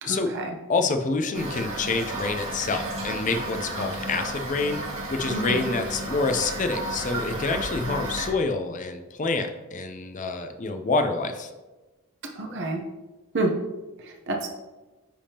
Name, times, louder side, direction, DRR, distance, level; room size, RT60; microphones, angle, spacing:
voice 1, 0.0-0.5 5.3-5.7 12.4-12.8 13.3-13.5 14.1-14.5, right 2 dB, 55° right, 2 dB, 0.8 m, -28 dB
voice 2, 0.7-4.8 5.1-11.5, left 3 dB, 35° left, 7 dB, 0.4 m, -27 dB
Toilet flush / Fill (with liquid), 1.3-8.3, right 1 dB, 70° right, 2.0 m, -33 dB
10.0 x 3.5 x 2.9 m, 1.2 s
head